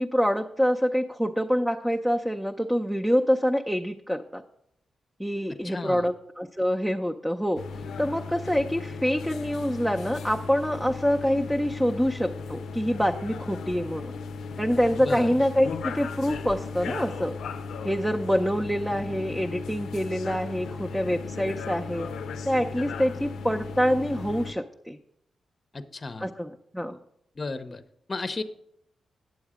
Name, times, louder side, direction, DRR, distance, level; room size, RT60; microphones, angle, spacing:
voice 1, 0.0-4.4 5.2-7.6 8.0-14.1 14.6-17.4 17.8-22.1 22.5-25.0 26.2-27.0, equal, ahead, 3 dB, 0.6 m, -26 dB
voice 2, 5.6-6.1 15.0-15.3 25.7-26.3 27.4-27.8 28.1-28.4, left 3 dB, 40° left, 10 dB, 0.7 m, -34 dB
sound 1, 7.6-24.5, left 4 dB, 85° left, 0.5 m, -36 dB
9.3 x 7.1 x 5.0 m, 0.74 s
cardioid pair, 60°, 0 cm